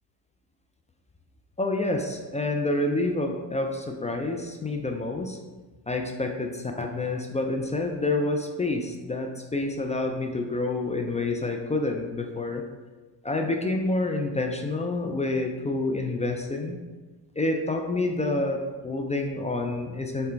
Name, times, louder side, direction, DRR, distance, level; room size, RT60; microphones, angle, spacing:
voice 1, 1.6-5.4 5.9-12.6 13.2-16.8 17.4-20.3, left 2 dB, 15° left, 3 dB, 0.3 m, -28 dB
4.8 x 2.2 x 4.4 m, 1.3 s
supercardioid pair, 65°, 44 cm